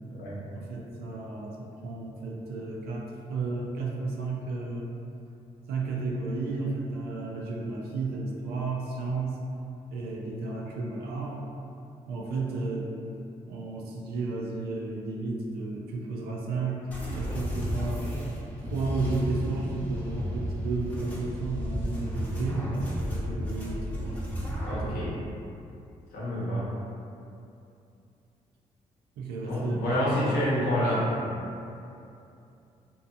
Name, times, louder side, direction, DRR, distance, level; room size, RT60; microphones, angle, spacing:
voice 1, 0.5-4.9 5.7-9.4 9.9-11.4 12.1-12.9 13.5-18.2 18.6-24.2 24.7-25.1 29.2-30.7, right 3 dB, 75° right, -2 dB, 0.4 m, -33 dB
sound 1, 16.9-24.9, equal, 10° left, 0.8 m, -33 dB
voice 2, 24.6-25.1 26.1-26.7 29.5-31.2, equal, 75° left, -8 dB, 0.8 m, -28 dB
2.7 x 2.3 x 2.5 m, 2.6 s
hypercardioid pair, 45°, 16 cm